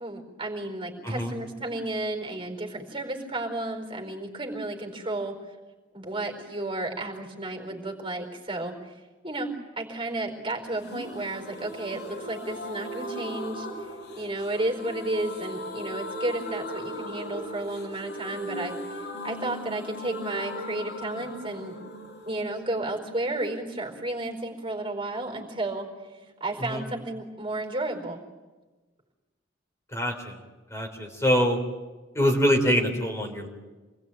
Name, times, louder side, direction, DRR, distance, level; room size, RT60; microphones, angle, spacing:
voice 1, 0.0-5.4 5.9-8.9 9.2-13.7 14.2-21.8 22.2-25.9 26.4-28.2, right 2 dB, 25° right, 3 dB, 4.5 m, -32 dB
sound 1, 10.8-24.4 24.7-24.8 25.0-25.1, equal, 60° left, 5.4 m, -38 dB
voice 2, 29.9-30.4 30.7-31.6 32.1-33.5, equal, 15° left, 2 dB, 3.7 m, -24 dB
28.0 x 20.5 x 9.2 m, 1.2 s
head